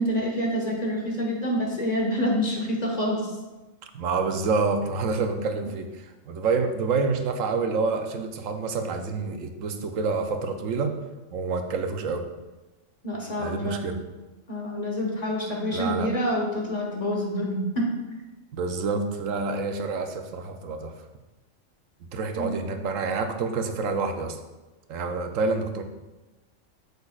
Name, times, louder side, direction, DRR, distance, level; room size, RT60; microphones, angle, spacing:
voice 1, 0.0-3.3 13.0-13.9 14.5-17.9 22.4-22.5, equal, 35° left, -1 dB, 1.2 m, -27 dB
voice 2, 3.9-10.9 11.3-12.3 13.4-14.0 15.7-16.1 18.5-21.0 22.1-24.4 24.9-25.8, right 4 dB, 80° right, 6 dB, 1.1 m, -28 dB
8.1 x 6.8 x 2.4 m, 1.1 s
omnidirectional pair, 1.4 m